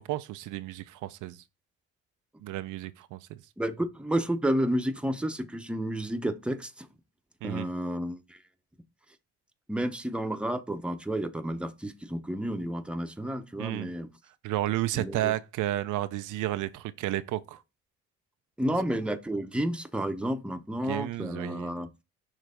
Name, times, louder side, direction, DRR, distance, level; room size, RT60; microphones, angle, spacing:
voice 1, 0.0-1.4 2.4-3.4 7.4-7.7 13.6-13.9 14.4-17.6 20.9-21.7, right 14 dB, 85° right, 0.6 m, -32 dB
voice 2, 3.6-6.9 7.4-8.4 9.7-14.1 14.9-15.3 18.6-21.9, right 1 dB, 5° right, 0.8 m, -31 dB
6.2 x 3.2 x 5.0 m
cardioid pair, 90°, 30 cm